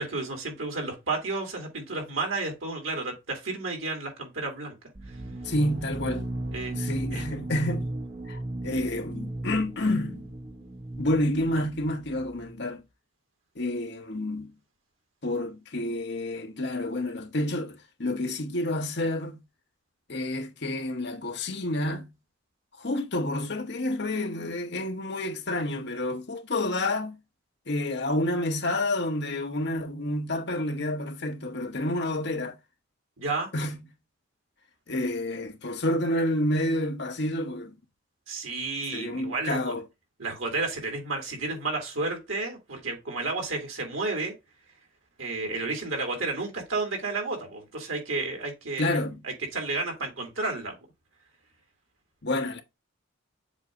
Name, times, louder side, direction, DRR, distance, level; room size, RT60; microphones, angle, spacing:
voice 1, 0.0-4.8 6.5-6.8 7.1-7.2 33.2-33.5 38.3-39.7 40.2-44.3 45.2-49.0 49.2-50.7, right 3 dB, 80° right, 2.6 m, -31 dB
sound 1, 4.9-12.6, right 1 dB, 35° right, 1.0 m, -36 dB
voice 2, 5.4-6.2 6.7-7.9 8.3-10.3 11.0-12.8 13.6-14.5 15.2-19.4 20.1-22.1 22.8-27.2 27.7-32.6 33.5-33.8 34.9-37.8 38.9-39.8 48.8-49.2 52.2-52.6, left 1 dB, 55° left, 1.0 m, -29 dB
7.3 x 2.7 x 4.9 m
head